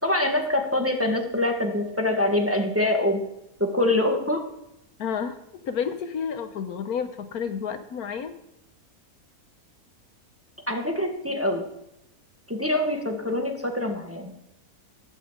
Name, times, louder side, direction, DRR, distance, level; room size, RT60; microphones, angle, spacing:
voice 1, 0.0-3.2 3.6-4.4 10.7-11.6 12.5-14.3, left 1 dB, 10° right, 2 dB, 1.5 m, -24 dB
voice 2, 5.0-5.4 5.6-8.3, left 7 dB, 75° left, 9 dB, 1.4 m, -30 dB
12.5 x 6.6 x 8.0 m, 0.86 s
omnidirectional pair, 1.6 m